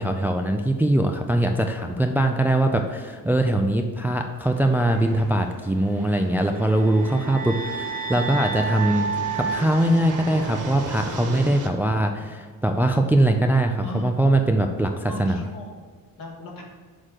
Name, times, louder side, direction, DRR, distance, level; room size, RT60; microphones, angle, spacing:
voice 1, 0.0-15.4, right 1 dB, 5° right, 5 dB, 0.3 m, -22 dB
sound 1, 4.4-11.7, right 3 dB, 55° right, 1.5 m, -37 dB
sound 2, 6.6-10.9, right 5 dB, 25° right, 0.9 m, -31 dB
voice 2, 11.4-11.8 13.8-14.2 15.1-15.8 16.2-16.6, left 1 dB, 65° left, -1 dB, 2.0 m, -38 dB
6.5 x 3.7 x 6.3 m, 1.5 s
cardioid pair, 110°, 36 cm